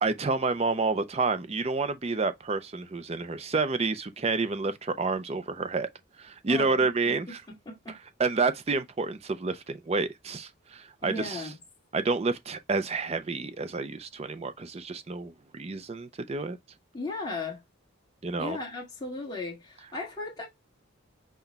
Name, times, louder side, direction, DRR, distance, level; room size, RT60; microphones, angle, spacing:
voice 1, 0.0-5.9 6.2-7.4 8.2-11.4 11.9-16.6 18.2-18.6, right 4 dB, 30° right, 0.4 m, -29 dB
voice 2, 6.5-8.0 11.0-11.6 16.9-17.6 18.4-20.5, left 3 dB, 20° left, 1.5 m, -37 dB
5.9 x 2.2 x 4.0 m
head